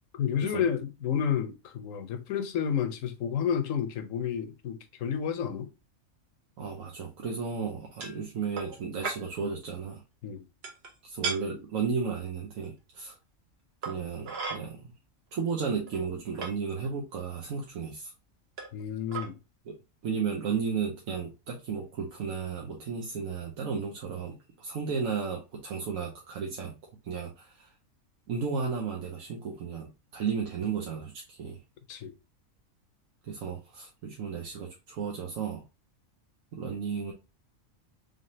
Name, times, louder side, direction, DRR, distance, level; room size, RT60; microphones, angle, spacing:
voice 1, 0.1-5.7 10.2-10.4 18.7-19.4 31.9-32.1, left 8 dB, 75° left, 1.0 m, -30 dB
voice 2, 6.6-10.0 11.0-13.1 13.8-14.9 15.3-18.1 19.7-19.8 20.0-26.8 27.0-27.7 28.3-31.6 33.3-35.6 36.5-37.1, right 5 dB, 90° right, 1.2 m, -34 dB
sound 1, 8.0-8.2 8.6-8.8 9.0-9.2 10.6-10.9 11.2-11.4 12.6-12.7 13.8-14.6 15.4-15.5 15.9-16.5 17.4-17.5 18.6-18.8 19.1-19.3, right 4 dB, 55° right, 1.1 m, -35 dB
3.9 x 3.4 x 2.6 m
omnidirectional pair, 1.4 m